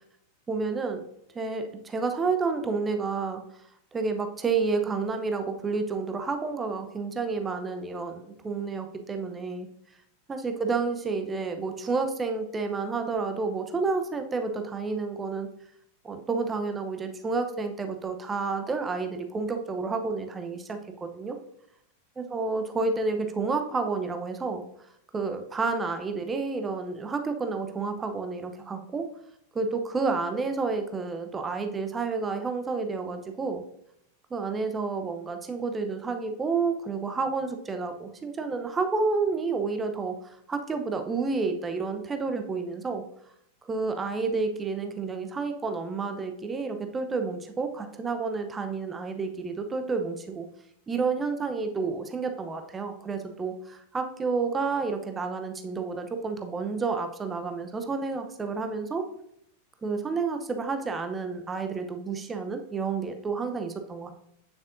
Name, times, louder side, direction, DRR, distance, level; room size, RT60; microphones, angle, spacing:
voice 1, 0.5-1.0 1.3-3.4 3.9-9.7 10.3-15.5 16.0-21.4 22.2-24.6 25.1-29.1 29.5-33.6 34.3-43.0 43.6-50.5 50.9-59.1 59.8-64.1, right 4 dB, 15° right, 6 dB, 0.8 m, -30 dB
8.7 x 7.1 x 2.6 m, 0.75 s
figure-of-eight pair, 90°, 0 cm